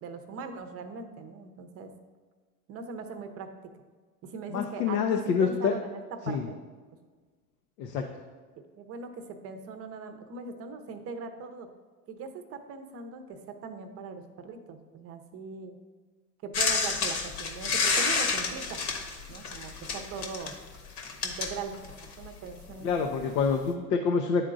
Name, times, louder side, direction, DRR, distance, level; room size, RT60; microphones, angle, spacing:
voice 1, 0.0-1.9 2.7-3.5 4.2-6.6 8.8-11.7 12.1-15.8 16.4-18.8 19.3-20.5 21.2-21.8 22.2-23.3, right 4 dB, 30° right, 7 dB, 0.6 m, -40 dB
voice 2, 4.5-5.8 6.3-6.4 7.8-8.1 22.8-24.4, left 5 dB, 85° left, 3 dB, 0.7 m, -27 dB
sound 1, 16.5-22.2 23.2-23.3, left 4 dB, 70° left, 1.3 m, -29 dB
10.5 x 3.7 x 2.5 m, 1.5 s
hypercardioid pair, 105°, 48 cm